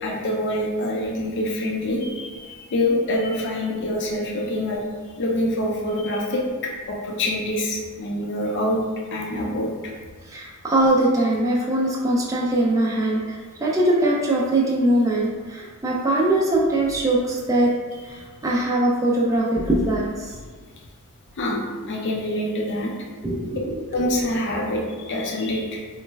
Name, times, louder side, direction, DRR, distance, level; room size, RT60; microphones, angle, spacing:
voice 1, 0.0-4.8 5.2-8.8 9.1-9.9 21.4-22.9 23.9-25.8, left 1 dB, 55° left, -2 dB, 0.5 m, -25 dB
voice 2, 10.3-17.7 18.0-20.3 23.2-23.8, right 1 dB, 15° right, -4 dB, 0.3 m, -21 dB
3.1 x 2.1 x 3.3 m, 1.5 s
head